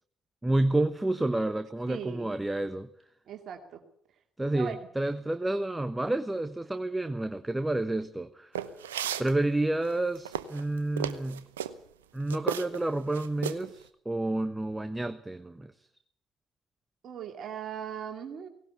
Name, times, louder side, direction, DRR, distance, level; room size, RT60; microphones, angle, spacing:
voice 1, 0.4-2.9 4.4-8.5 9.2-11.4 12.1-15.7, right 2 dB, 15° right, 11 dB, 1.2 m, -29 dB
voice 2, 1.9-2.3 3.3-3.8 4.5-4.8 17.0-18.5, right 8 dB, 60° right, 4 dB, 2.6 m, -39 dB
sound 1, 8.6-9.3 9.9-11.7 12.3-12.9 13.1-13.7, right 10 dB, 90° right, 0.9 m, -33 dB
18.0 x 18.0 x 8.4 m, 0.65 s
hypercardioid pair, 50°, 0 cm